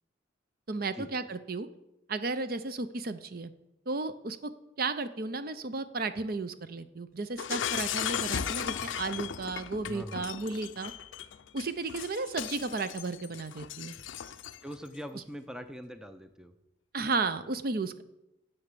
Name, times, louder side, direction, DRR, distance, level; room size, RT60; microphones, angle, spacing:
voice 1, 0.7-1.7 2.1-3.5 3.9-4.5 4.8-10.9 11.5-14.0 16.9-18.0, right 3 dB, 50° right, 12 dB, 0.6 m, -34 dB
Shatter, 7.4-14.7, left 9 dB, 80° left, 0.5 m, -36 dB
voice 2, 9.9-10.3 14.6-16.5, equal, 5° right, 9 dB, 0.5 m, -42 dB
9.9 x 7.2 x 6.8 m, 0.90 s
head